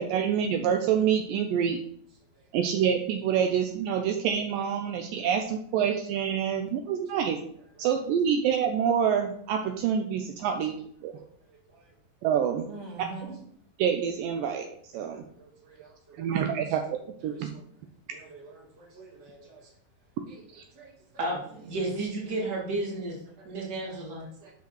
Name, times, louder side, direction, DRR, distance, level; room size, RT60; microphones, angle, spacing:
voice 1, 0.0-1.8 2.5-7.4 7.8-10.7 11.0-11.1 12.2-12.7 13.8-14.7 14.9-15.2 16.2-16.8 17.2-17.5 20.5-20.6, right 8 dB, 80° right, 4 dB, 2.1 m, -26 dB
voice 2, 11.5-11.9 12.7-13.4 15.0-16.5 17.3-17.6 18.1-19.7 20.3-20.4 20.7-21.3 23.4-23.5 23.9-24.5, right 3 dB, 55° right, 0 dB, 2.2 m, -48 dB
voice 3, 21.2-23.2 23.4-24.2, right 2 dB, 35° right, -4 dB, 2.3 m, -32 dB
8.5 x 5.9 x 3.0 m, 0.64 s
omnidirectional pair, 4.1 m